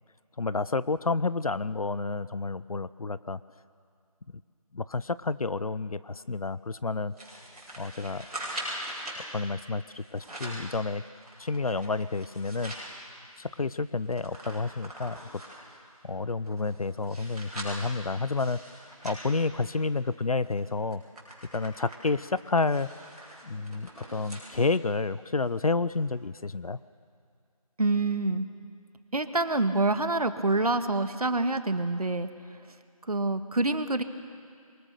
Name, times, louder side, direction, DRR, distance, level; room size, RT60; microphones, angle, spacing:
voice 1, 0.4-3.4 4.7-7.1 7.8-8.3 9.2-11.0 11.4-12.7 13.4-15.4 16.0-21.0 21.5-22.9 23.4-26.8, left 3 dB, 70° left, 16 dB, 0.7 m, -30 dB
sound 1, 7.1-9.2 10.0-10.7 11.1-12.9 13.3-13.4 13.7-15.7 16.3-20.0 20.4-20.6 20.9-24.5 24.9-25.0 25.9-26.0, right 1 dB, ahead, 4.9 m, -42 dB
voice 2, 27.8-28.5 29.1-32.3 33.1-34.0, right 2 dB, 75° right, 9 dB, 1.5 m, -26 dB
26.0 x 23.5 x 6.8 m, 2.3 s
figure-of-eight pair, 170°, 19 cm